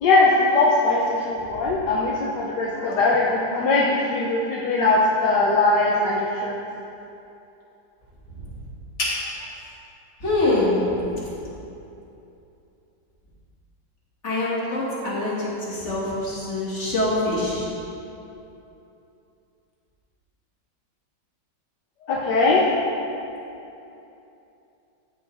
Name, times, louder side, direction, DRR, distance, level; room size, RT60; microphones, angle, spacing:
voice 1, 0.0-6.5 22.1-22.6, left 3 dB, 75° left, -3 dB, 1.4 m, -20 dB
voice 2, 10.2-10.9 14.2-17.7, left 2 dB, 40° left, -7 dB, 2.4 m, -24 dB
12.5 x 7.1 x 3.5 m, 2.8 s
omnidirectional pair, 1.9 m